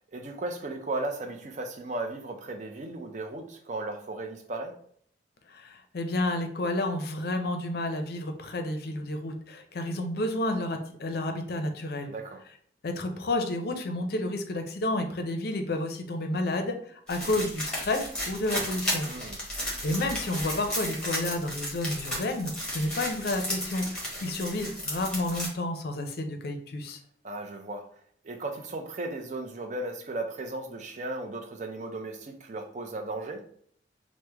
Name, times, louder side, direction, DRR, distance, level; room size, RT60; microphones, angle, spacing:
voice 1, 0.0-4.8 12.1-12.4 19.1-19.4 27.2-33.5, right 2 dB, 45° right, 0.5 m, -36 dB
voice 2, 5.5-12.1 12.8-19.1 19.8-23.9 24.2-27.0, left 1 dB, 60° left, 0.5 m, -30 dB
sound 1, 17.1-25.5, equal, 5° left, 1.1 m, -34 dB
3.1 x 2.1 x 3.3 m
head